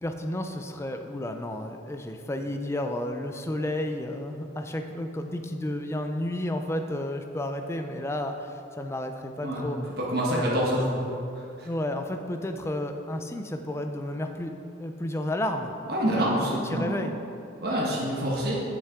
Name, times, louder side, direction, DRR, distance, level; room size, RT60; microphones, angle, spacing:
voice 1, 0.0-9.8 10.3-10.6 11.6-14.5 14.8-15.7 16.2-17.1, left 1 dB, 15° left, 5 dB, 0.3 m, -32 dB
voice 2, 10.0-11.1 11.6-11.7 15.9-16.9 17.6-18.6, equal, 55° right, -5 dB, 1.3 m, -26 dB
8.2 x 6.8 x 3.6 m, 2.6 s
head